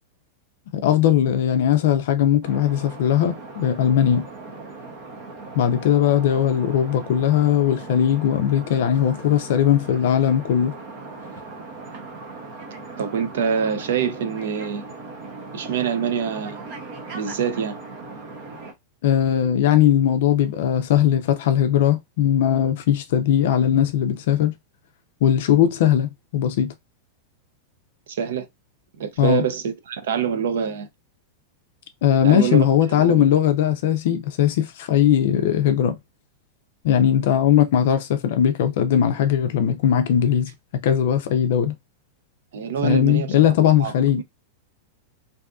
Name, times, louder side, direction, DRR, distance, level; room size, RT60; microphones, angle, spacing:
voice 1, 0.7-4.3 5.5-10.7 19.0-24.5 25.2-26.7 29.2-29.4 32.0-36.0 36.8-41.7 42.8-44.2, left 9 dB, 55° left, 0.4 m, -19 dB
sound 1, 2.4-18.7, right 3 dB, 35° right, 0.7 m, -39 dB
voice 2, 13.0-14.8 15.5-16.6 17.1-17.8 28.1-28.5 29.0-30.9 32.2-32.7 33.0-33.3 42.5-43.5 43.8-44.2, right 7 dB, 75° right, 0.5 m, -25 dB
2.6 x 2.4 x 2.3 m
supercardioid pair, 170°, 0 cm